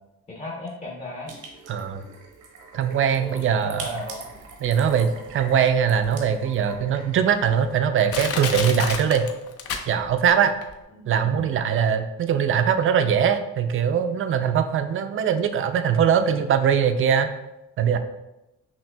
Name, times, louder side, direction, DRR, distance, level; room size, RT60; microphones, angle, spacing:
voice 1, 0.3-1.3 3.1-4.3 10.9-11.5, left 1 dB, 20° left, -4 dB, 0.7 m, -36 dB
sound 1, 1.3-7.9, right 3 dB, 80° right, 0.9 m, -43 dB
voice 2, 1.7-2.0 2.7-3.9 4.6-9.3 9.9-10.5 11.1-17.3 17.8-18.0, right 8 dB, 45° right, 8 dB, 0.4 m, -21 dB
Crushing, 6.0-6.1 6.8-6.9 7.5-7.6 8.1-10.3 10.6-10.7, left 6 dB, 50° left, 0.5 m, -29 dB
5.8 x 2.6 x 2.2 m, 0.94 s
cardioid pair, 90°, 30 cm